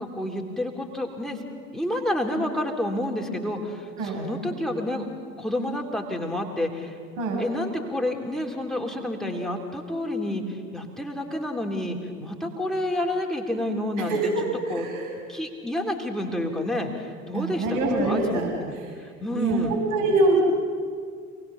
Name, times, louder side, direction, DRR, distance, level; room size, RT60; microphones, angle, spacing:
voice 1, 0.0-1.4 1.7-5.1 5.4-7.0 7.4-14.3 14.7-14.9 15.3-18.7 19.0-19.7, left 1 dB, ahead, 1 dB, 3.4 m, -29 dB
voice 2, 14.7-15.0 17.3-18.5 19.3-20.4, right 2 dB, 50° right, -2 dB, 6.7 m, -24 dB
28.0 x 19.5 x 7.2 m, 2.1 s
figure-of-eight pair, 70°, 42 cm